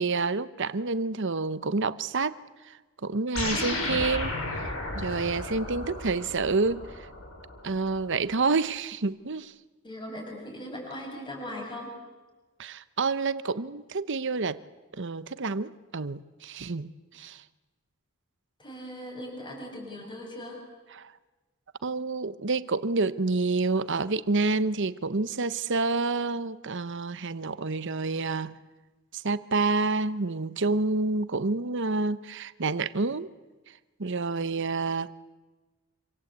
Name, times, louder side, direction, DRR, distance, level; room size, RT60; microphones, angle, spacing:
voice 1, 0.0-2.4 2.6-4.4 4.9-7.1 7.6-9.5 12.6-14.6 15.0-17.4 20.9-21.1 21.8-28.6 29.1-33.3 34.0-35.1, right 3 dB, 60° right, 14 dB, 1.0 m, -28 dB
sound 1, 3.3-8.0, left 2 dB, 70° left, 8.0 m, -33 dB
voice 2, 9.8-11.9 18.6-20.6, left 1 dB, 25° left, 0 dB, 7.6 m, -39 dB
26.5 x 26.0 x 8.3 m, 1.2 s
head